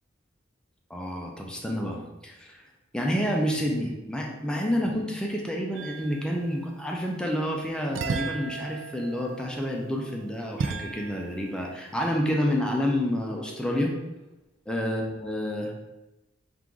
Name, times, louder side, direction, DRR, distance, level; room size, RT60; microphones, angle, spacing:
voice 1, 0.9-2.6 2.9-13.9 14.7-15.7, equal, 5° left, 0 dB, 0.5 m, -29 dB
sound 1, 5.7-6.5 7.9-11.6, right 4 dB, 75° right, 0.3 m, -35 dB
4.5 x 2.5 x 3.6 m, 1.0 s
head